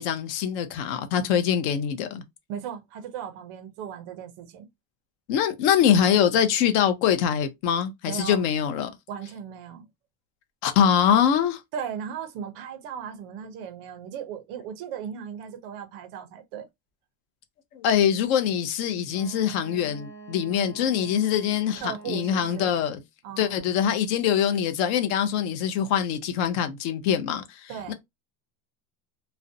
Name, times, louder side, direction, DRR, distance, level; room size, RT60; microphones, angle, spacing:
voice 1, 0.0-2.2 5.3-8.9 10.6-11.6 17.7-23.0 23.4-27.9, left 8 dB, 50° left, 0.5 m, -24 dB
voice 2, 2.5-4.7 8.1-8.4 9.1-9.8 11.7-16.7 21.8-22.7 23.2-23.8 27.7-27.9, right 8 dB, 40° right, 0.4 m, -37 dB
Wind instrument woodwind instrument, 19.1-22.8, right 4 dB, 5° left, 0.8 m, -45 dB
2.4 x 2.1 x 2.5 m
cardioid pair, 170°, 44 cm